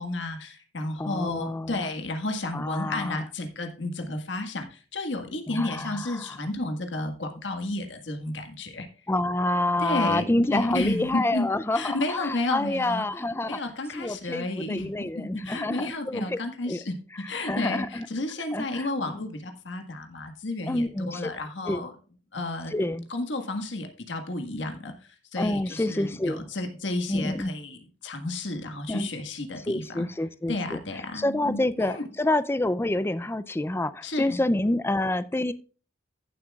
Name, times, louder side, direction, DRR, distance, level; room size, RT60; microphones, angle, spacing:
voice 1, 0.0-8.9 9.8-11.5 11.7-13.1 13.5-17.0 17.3-20.9 21.1-21.9 22.3-22.7 23.1-24.9 25.3-30.0 30.5-32.0 34.0-34.4, left 2 dB, 75° left, 5 dB, 1.7 m, -32 dB
voice 2, 1.0-1.8 2.5-3.2 5.5-6.3 9.1-13.6 13.9-16.4 16.7-16.8 17.4-18.1 18.5-19.2 20.7-21.3 21.7-21.8 22.7-23.1 25.4-26.4 27.1-27.6 28.9-29.1 29.7-30.8 31.1-35.5, left 1 dB, 15° left, 14 dB, 0.4 m, -28 dB
15.0 x 7.7 x 2.4 m, 0.39 s
head